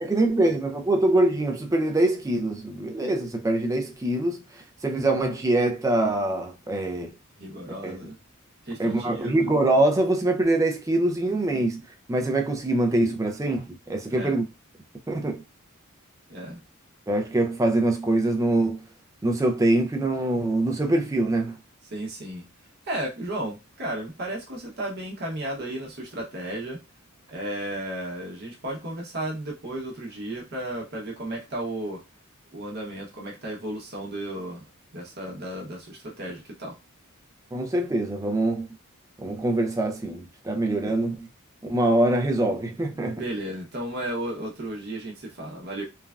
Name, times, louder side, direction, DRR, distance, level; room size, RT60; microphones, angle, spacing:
voice 1, 0.0-7.1 7.8-8.0 8.8-11.8 12.1-14.4 15.1-15.4 17.1-18.8 19.2-21.5 37.5-38.7 39.2-41.3 41.7-43.2, right 1 dB, 15° right, 0.3 m, -24 dB
voice 2, 7.4-8.1 8.6-9.4 14.1-14.4 16.3-16.6 21.9-22.4 22.9-26.8 27.3-32.0 32.5-34.6 34.9-36.8 43.0-45.8, right 1 dB, 45° right, 0.8 m, -34 dB
3.2 x 2.2 x 2.3 m
head